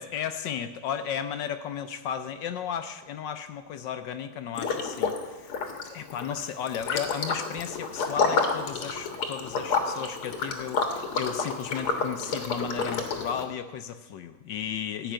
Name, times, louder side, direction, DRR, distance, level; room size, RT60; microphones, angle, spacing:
voice 1, 0.0-5.6 5.8-15.1, left 8 dB, 70° left, 9 dB, 1.2 m, -34 dB
Liquid, 4.5-5.2 5.5-13.4, left 4 dB, 85° left, 2.3 m, -29 dB
15.0 x 5.9 x 8.9 m, 1.2 s
omnidirectional pair, 2.4 m